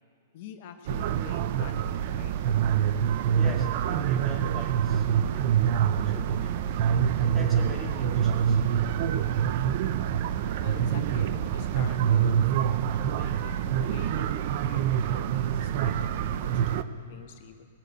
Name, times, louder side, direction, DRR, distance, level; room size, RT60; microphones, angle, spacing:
voice 1, 0.3-2.3 10.6-12.4 13.1-17.7, left 8 dB, 50° left, 6 dB, 0.9 m, -45 dB
sound 1, 0.9-16.8, right 9 dB, 50° right, 0.5 m, -26 dB
voice 2, 3.4-8.8, equal, 10° right, 0 dB, 2.1 m, -43 dB
19.5 x 6.5 x 8.0 m, 2.5 s
hypercardioid pair, 145°, 0 cm